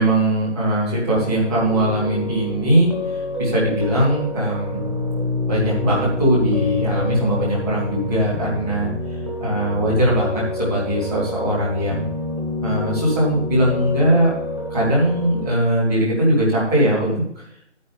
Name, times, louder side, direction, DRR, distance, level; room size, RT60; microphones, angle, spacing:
voice 1, 0.0-4.8 5.5-8.9 9.4-12.1 12.6-14.3 14.7-17.2, right 1 dB, 5° right, -13 dB, 1.1 m, -20 dB
Piano, 1.1-15.5, left 2 dB, 25° right, 1.5 m, -27 dB
10.5 x 9.4 x 3.5 m, 0.71 s
figure-of-eight pair, 160°, 37 cm